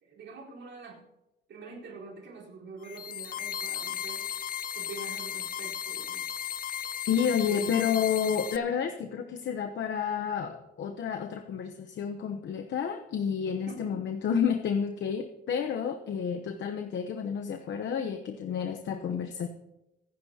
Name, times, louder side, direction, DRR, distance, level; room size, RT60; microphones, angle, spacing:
voice 1, 0.0-1.0 1.5-4.3 4.7-6.2 7.4-7.9 13.7-13.9, right 3 dB, 65° right, -3 dB, 4.2 m, -45 dB
sound 1, 2.8-8.6, left 9 dB, 45° left, 0.6 m, -35 dB
voice 2, 7.1-19.5, left 7 dB, 65° left, 5 dB, 0.9 m, -30 dB
25.0 x 10.5 x 2.9 m, 0.95 s
cardioid pair, 90°, 20 cm